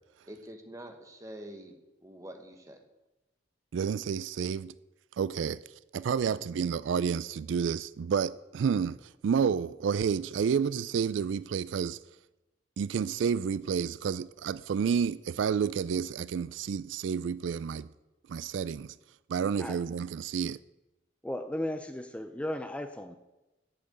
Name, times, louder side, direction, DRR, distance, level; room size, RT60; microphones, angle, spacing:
voice 1, 0.3-1.7 2.0-2.8, right 1 dB, 15° right, 1.3 m, -46 dB
voice 2, 3.7-4.7 5.1-12.0 12.8-17.9 18.3-19.0 19.3-20.6, right 7 dB, 80° right, 0.3 m, -30 dB
voice 3, 21.2-23.2, left 1 dB, 5° left, 0.5 m, -35 dB
8.5 x 7.7 x 8.0 m
head